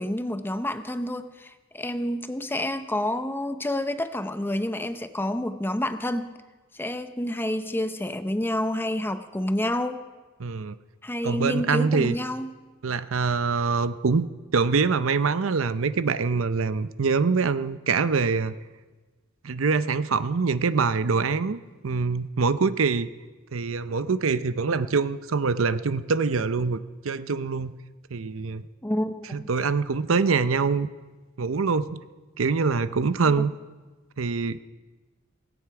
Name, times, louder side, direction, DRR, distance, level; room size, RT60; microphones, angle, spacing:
voice 1, 0.0-6.3 6.7-10.1 11.0-12.5 28.8-29.5 33.4-33.5, left 1 dB, 10° left, 10 dB, 0.7 m, -29 dB
voice 2, 10.4-10.8 11.2-12.2 12.8-18.6 19.4-23.1 23.5-27.7 28.1-28.7 29.3-30.9 31.4-32.0 32.4-33.5 34.2-34.6, right 4 dB, 80° right, 13 dB, 0.7 m, -24 dB
18.0 x 16.5 x 4.8 m, 1.3 s
head